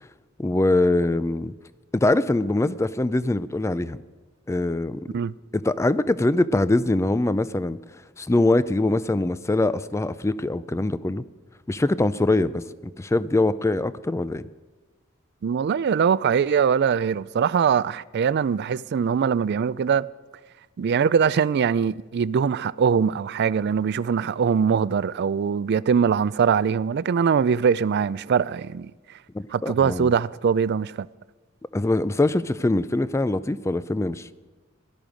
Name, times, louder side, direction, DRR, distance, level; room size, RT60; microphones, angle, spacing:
voice 1, 0.4-1.5 1.9-4.0 4.5-5.0 5.5-7.8 8.2-11.2 11.7-14.4 29.3-30.1 31.7-34.3, left 2 dB, 15° left, 0.4 m, -23 dB
voice 2, 15.4-20.1 20.8-28.9 29.5-31.1, right 6 dB, 55° right, 0.3 m, -22 dB
17.5 x 12.5 x 5.2 m
head